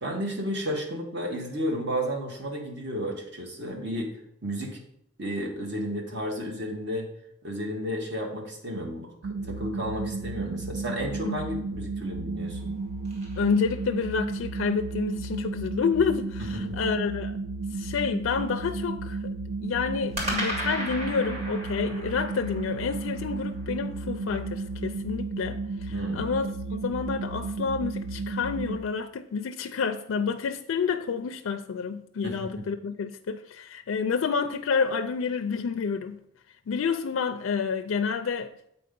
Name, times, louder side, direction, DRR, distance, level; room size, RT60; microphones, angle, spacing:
voice 1, 0.0-4.8 5.2-7.1 7.4-9.1 9.4-12.7 16.5-16.8 25.9-26.3 32.2-32.6, equal, 60° right, 1.6 m, -32 dB
sound 1, 9.2-28.8, right 3 dB, 85° right, 0.6 m, -33 dB
sound 2, 12.4-14.3 20.1-24.4, equal, 35° right, 1.9 m, -37 dB
voice 2, 13.4-17.4 17.7-19.3 19.6-36.2 36.7-38.5, left 5 dB, 80° left, 0.4 m, -29 dB
7.6 x 4.3 x 5.2 m
head